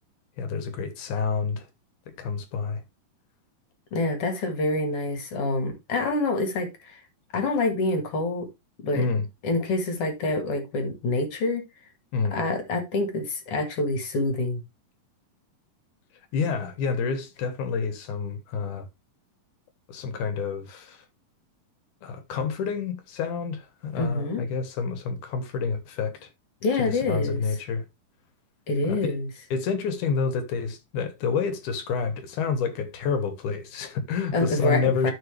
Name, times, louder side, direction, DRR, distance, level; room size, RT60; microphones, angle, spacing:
voice 1, 0.4-1.7 2.2-2.8 8.9-9.3 12.1-12.4 16.3-18.9 19.9-21.0 22.0-26.3 26.8-27.8 28.8-29.2 29.5-35.1, left 5 dB, 70° left, 2.5 m, -28 dB
voice 2, 3.9-7.0 7.3-8.5 8.8-9.0 9.4-11.6 12.3-14.6 24.0-24.4 26.6-27.4 28.7-29.3 34.3-35.1, left 2 dB, 50° left, 2.2 m, -26 dB
13.5 x 4.5 x 3.2 m
omnidirectional pair, 4.1 m